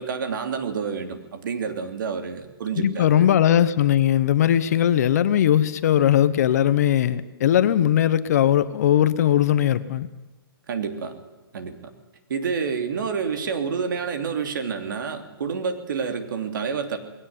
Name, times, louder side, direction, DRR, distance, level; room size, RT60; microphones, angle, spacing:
voice 1, 0.0-3.3 10.7-11.1 11.5-11.9 12.3-17.0, right 6 dB, 55° right, 6 dB, 3.0 m, -28 dB
voice 2, 2.8-10.1, left 10 dB, 40° left, 14 dB, 1.0 m, -19 dB
20.5 x 18.0 x 9.5 m, 1.1 s
hypercardioid pair, 165°, 13 cm